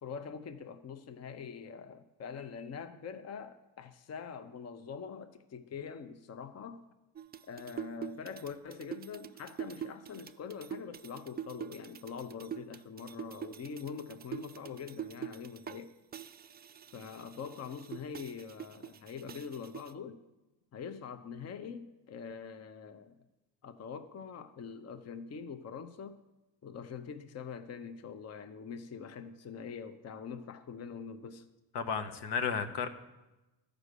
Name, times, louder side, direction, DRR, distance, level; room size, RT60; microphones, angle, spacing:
voice 1, 0.0-6.8 7.5-16.0 16.9-20.2 20.7-23.2 23.6-26.2 26.6-31.5, left 6 dB, 40° left, 0.7 m, -44 dB
sound 1, 7.2-15.8 16.1-19.9, right 9 dB, 25° right, 0.4 m, -45 dB
voice 2, 31.7-32.9, left 6 dB, 75° left, 1.0 m, -33 dB
12.0 x 5.1 x 6.7 m
cardioid pair, 95°, 41 cm